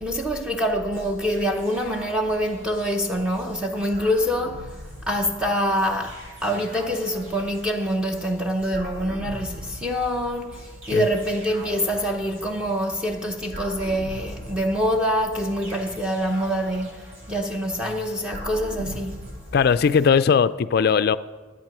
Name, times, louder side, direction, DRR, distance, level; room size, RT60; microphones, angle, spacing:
voice 1, 0.0-19.2, equal, 5° right, 0.6 m, -25 dB
sound 1, 0.9-20.1, equal, 60° right, 3.6 m, -41 dB
voice 2, 19.5-21.2, left 6 dB, 50° left, 0.3 m, -19 dB
12.0 x 8.3 x 6.0 m
head